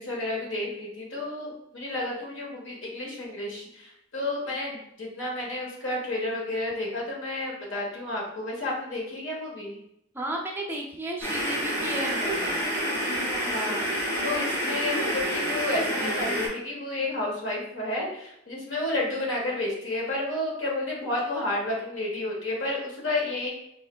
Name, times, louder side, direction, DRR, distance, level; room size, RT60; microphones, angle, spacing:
voice 1, 0.0-9.8 13.4-13.9 14.2-23.5, left 2 dB, 75° left, -2 dB, 1.1 m, -31 dB
voice 2, 10.1-12.6, right 1 dB, 10° right, 0 dB, 0.4 m, -33 dB
sound 1, 11.2-16.5, equal, 15° left, 1.5 m, -28 dB
4.3 x 3.1 x 2.2 m, 0.76 s
head